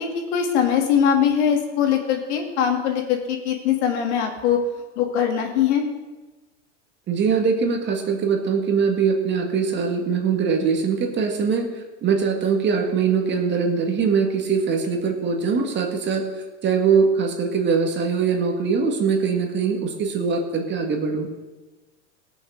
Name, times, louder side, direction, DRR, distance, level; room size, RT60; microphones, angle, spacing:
voice 1, 0.0-4.6 5.0-5.8, left 8 dB, 65° left, 3 dB, 2.8 m, -21 dB
voice 2, 7.1-16.3 16.6-21.3, right 5 dB, 30° right, 3 dB, 2.2 m, -22 dB
17.5 x 7.1 x 6.6 m, 1.2 s
supercardioid pair, 125°, 36 cm